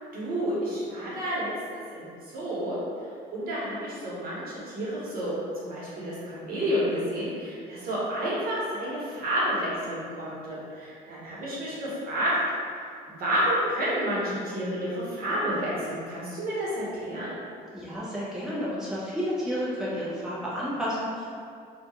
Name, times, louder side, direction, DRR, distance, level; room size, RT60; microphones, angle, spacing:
voice 1, 0.1-2.8 3.3-12.4 13.1-17.3, equal, 60° right, -8 dB, 0.9 m, -30 dB
voice 2, 17.7-21.4, equal, 5° right, -9 dB, 0.6 m, -31 dB
2.3 x 2.2 x 2.9 m, 2.2 s
cardioid pair, 110°, 17 cm